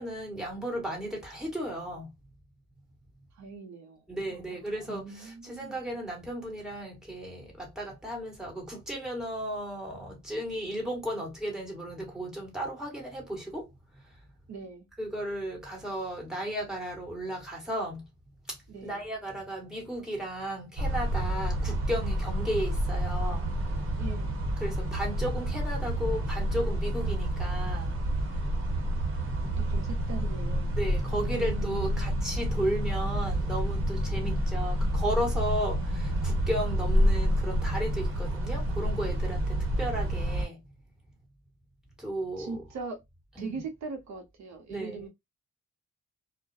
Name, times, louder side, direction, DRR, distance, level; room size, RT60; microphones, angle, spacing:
voice 1, 0.0-2.1 4.1-13.7 15.0-18.0 18.5-23.7 24.6-27.9 30.8-40.6 42.0-42.6 43.4-43.6 44.7-45.0, right 1 dB, ahead, 1.3 m, -34 dB
voice 2, 3.3-4.0 4.3-5.8 14.5-14.9 18.7-19.0 24.0-24.4 29.4-30.8 31.1-32.1 42.4-43.0 43.4-45.1, right 4 dB, 65° right, 0.7 m, -41 dB
sound 1, 20.8-40.4, equal, 45° right, 1.0 m, -29 dB
2.3 x 2.1 x 2.5 m
cardioid pair, 90°, 30 cm